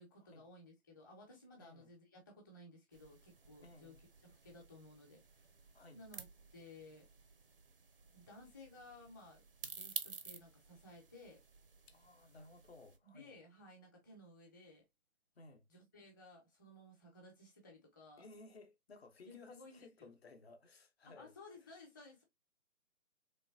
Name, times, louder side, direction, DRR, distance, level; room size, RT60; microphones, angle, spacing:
voice 1, 0.0-5.4 5.9-6.3 6.5-7.1 8.1-11.4 13.0-14.8 15.7-18.3 19.2-20.1 21.0-22.2, left 2 dB, 15° left, 0.9 m, -57 dB
voice 2, 1.6-1.9 3.6-4.0 5.7-6.0 11.9-13.3 15.4-15.7 18.2-21.3, left 3 dB, 45° left, 0.9 m, -58 dB
sound 1, 2.9-13.0, right 4 dB, 40° right, 0.5 m, -52 dB
3.7 x 3.2 x 2.5 m
figure-of-eight pair, 150°, 43 cm